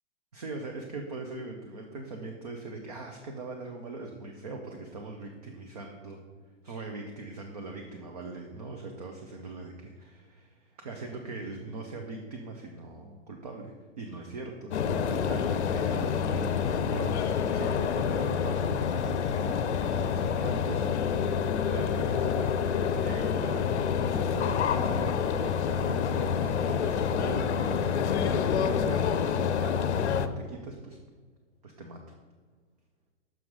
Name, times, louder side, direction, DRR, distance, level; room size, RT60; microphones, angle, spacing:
voice 1, 0.3-6.2 6.6-17.2 17.5-31.0 31.6-32.0, right 3 dB, 35° right, 2 dB, 0.5 m, -40 dB
sound 1, 14.7-30.3, left 7 dB, 65° left, 0.6 m, -28 dB
6.1 x 5.6 x 4.7 m, 1.5 s
hypercardioid pair, 175°, 36 cm